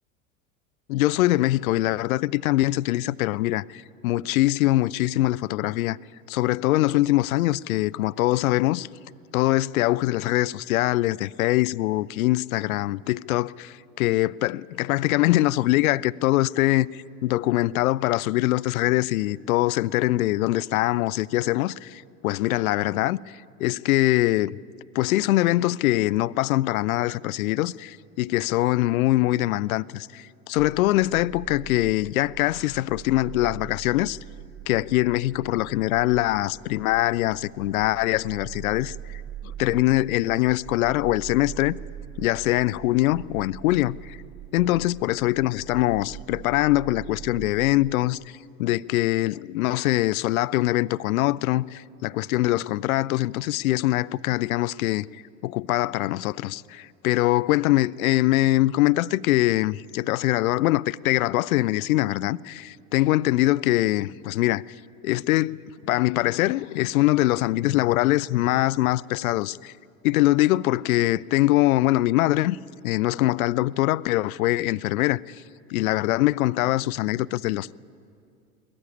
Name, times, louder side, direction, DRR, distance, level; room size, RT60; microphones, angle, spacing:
voice 1, 0.9-6.0 6.3-8.9 9.3-24.6 24.9-34.2 34.7-41.8 42.2-44.2 44.5-48.2 48.6-55.1 55.4-64.6 65.0-69.7 70.0-72.6 72.8-75.4 75.7-77.7, left 17 dB, 65° left, 0.5 m, -23 dB
sound 1, 30.6-47.9, right 10 dB, 50° right, 1.4 m, -42 dB
21.0 x 14.0 x 9.6 m
figure-of-eight pair, 75°, 46 cm